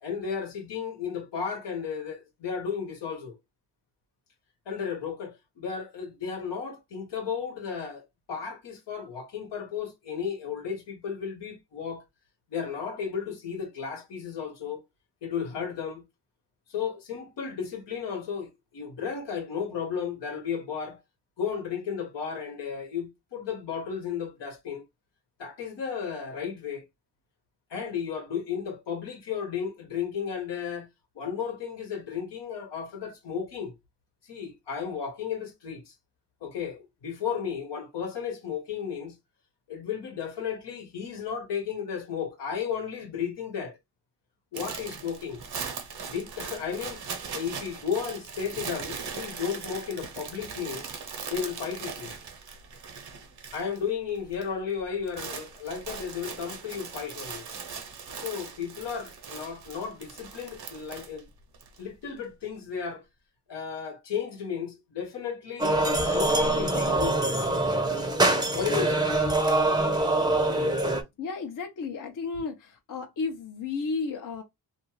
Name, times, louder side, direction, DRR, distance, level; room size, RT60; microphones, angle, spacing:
voice 1, 0.0-3.4 4.7-12.0 12.5-14.8 15.2-16.0 16.7-21.0 21.4-24.8 25.4-26.8 27.7-30.9 31.1-33.7 34.3-35.9 36.4-39.1 39.7-43.8 44.5-45.4 46.1-47.0 47.3-50.9 51.3-52.1 53.5-57.4 58.2-61.3 61.8-63.0 63.5-67.2 68.5-69.1, left 7 dB, 80° left, 1.1 m, -34 dB
sound 1, 44.5-53.8 54.1-54.5 54.8-61.8, right 6 dB, 65° right, 0.9 m, -40 dB
sound 2, 65.6-71.0, right 2 dB, 10° right, 0.6 m, -24 dB
voice 2, 71.2-74.4, left 4 dB, 50° left, 0.7 m, -33 dB
2.5 x 2.3 x 3.0 m
cardioid pair, 65°, 42 cm